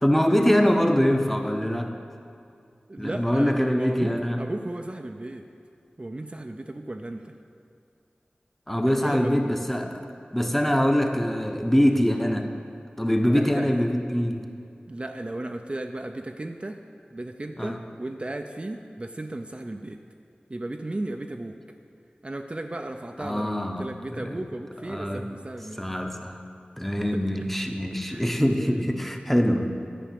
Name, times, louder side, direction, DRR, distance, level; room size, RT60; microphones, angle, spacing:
voice 1, 0.0-2.0 3.0-4.4 8.7-10.0 10.3-12.5 13.0-14.5 17.6-17.8 23.2-24.4 24.9-25.3 25.8-26.4 26.8-29.9, equal, 5° left, 4 dB, 0.8 m, -24 dB
voice 2, 2.9-5.5 6.0-7.3 8.9-9.6 13.2-13.8 14.9-16.8 17.1-20.0 20.5-21.6 22.2-25.9 27.0-27.5 28.1-28.3 28.6-28.8, right 1 dB, 35° right, 4 dB, 0.5 m, -35 dB
10.0 x 5.1 x 7.6 m, 2.4 s
wide cardioid pair, 50°, 3 cm